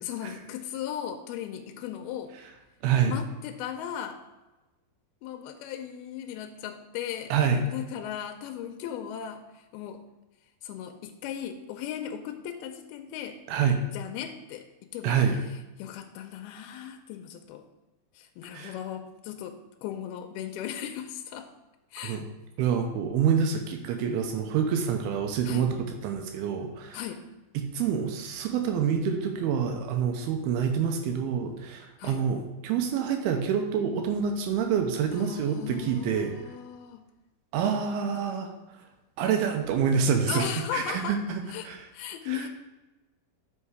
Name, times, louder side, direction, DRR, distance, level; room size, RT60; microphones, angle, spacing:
voice 1, 0.0-2.3 3.0-4.2 5.2-7.3 7.7-10.0 10.6-13.4 13.9-14.7 14.9-15.2 15.8-17.6 18.2-21.5 21.9-22.2 25.5-25.7 26.9-27.2 32.0-32.2 35.1-37.0 38.0-38.3 40.3-41.2 41.5-41.7 41.9-42.5, left 9 dB, 85° left, 5 dB, 2.4 m, -37 dB
voice 2, 2.8-3.1 7.3-7.6 13.5-13.8 15.0-15.4 18.5-18.8 22.0-22.3 22.6-27.0 27.6-36.3 37.5-38.5 39.2-41.9 42.3-42.5, right 7 dB, 85° right, 4 dB, 2.5 m, -27 dB
5.6 x 5.5 x 4.7 m, 1.1 s
omnidirectional pair, 4.4 m